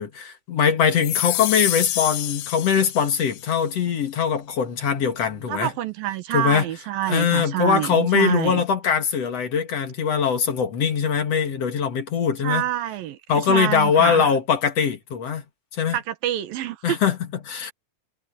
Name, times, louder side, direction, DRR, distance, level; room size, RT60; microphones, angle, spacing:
voice 1, 0.0-5.7 6.3-6.7 7.1-12.6 13.3-15.4 15.7-16.0 16.8-17.7, left 7 dB, 50° left, 2.6 m, -22 dB
sound 1, 0.9-3.5, left 14 dB, 85° left, 2.9 m, -27 dB
voice 2, 5.5-8.6 12.4-14.3 15.9-17.0, right 13 dB, 85° right, 3.1 m, -27 dB
omnidirectional pair, 4.0 m